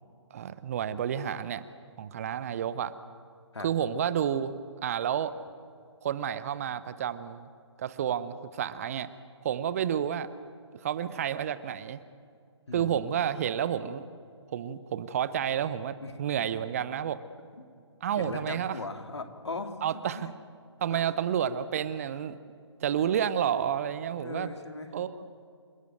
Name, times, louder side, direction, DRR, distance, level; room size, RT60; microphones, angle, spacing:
voice 1, 0.3-1.6 2.0-2.9 3.6-4.5 4.8-5.4 6.0-7.5 7.8-9.1 9.4-10.3 10.7-12.0 12.7-14.0 14.5-17.2 18.0-18.8 19.8-20.3 20.8-22.4 22.8-24.5 24.9-25.1, right 9 dB, 30° right, 15 dB, 0.8 m, -30 dB
voice 2, 12.7-13.0 16.0-16.1 16.4-16.5 18.2-19.8 20.1-20.3 20.9-21.0 24.2-24.9, left 3 dB, 65° left, 6 dB, 2.5 m, -38 dB
28.0 x 13.5 x 9.1 m, 2.3 s
figure-of-eight pair, 140°, 15 cm